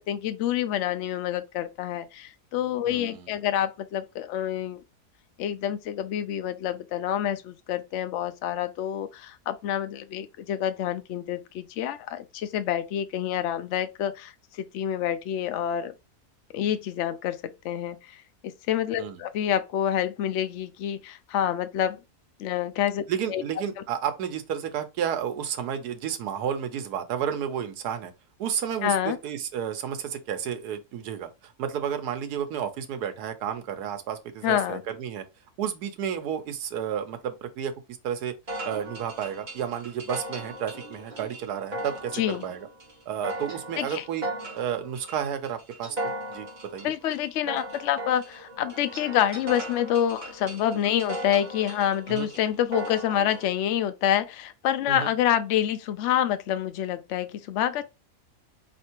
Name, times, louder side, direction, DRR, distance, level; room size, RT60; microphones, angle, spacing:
voice 1, 0.0-4.8 5.4-15.9 16.5-18.0 18.4-22.0 22.4-23.0 23.3-23.4 23.8-23.9 28.8-29.2 34.4-34.8 42.1-42.4 43.8-44.0 46.8-57.8, left 10 dB, 65° left, 0.7 m, -27 dB
voice 2, 2.9-3.4 19.0-19.2 23.1-28.1 28.4-35.2 35.6-37.7 38.0-38.3 38.6-42.7 43.1-44.3 44.5-46.5 46.7-46.9 52.1-52.3 54.9-55.1, right 8 dB, 80° right, 1.3 m, -31 dB
sound 1, 38.5-53.5, right 1 dB, 30° right, 1.3 m, -38 dB
4.3 x 3.2 x 2.8 m
omnidirectional pair, 1.7 m